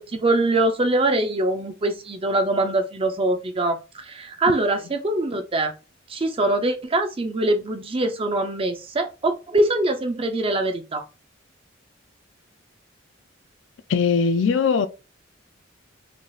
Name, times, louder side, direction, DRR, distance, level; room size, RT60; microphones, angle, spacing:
voice 1, 0.0-5.7 6.1-11.0, right 2 dB, 25° right, 0.5 m, -23 dB
voice 2, 13.9-14.9, left 5 dB, 65° left, 0.4 m, -20 dB
3.9 x 3.3 x 2.3 m
head